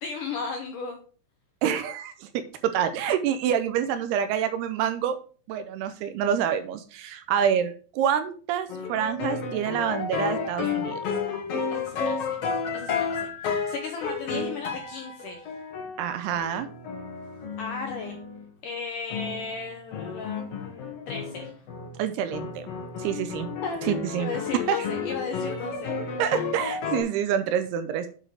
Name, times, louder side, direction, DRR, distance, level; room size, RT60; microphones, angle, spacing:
voice 1, 0.0-1.0 11.7-12.4 12.7-15.5 16.1-16.2 17.6-18.2 18.6-20.6 21.1-21.5 23.6-23.9 24.2-26.2, left 4 dB, 75° left, 3 dB, 1.9 m, -35 dB
voice 2, 1.6-5.2 5.5-11.0 16.0-16.7 22.0-22.7 23.0-23.5 23.8-24.3 24.7-24.8 26.2-28.1, right 9 dB, 80° right, 10 dB, 2.6 m, -27 dB
sound 1, 8.7-18.4 19.1-22.0 22.3-27.0, left 5 dB, 60° left, 1.6 m, -32 dB
8.8 x 4.9 x 4.7 m, 0.40 s
omnidirectional pair, 4.9 m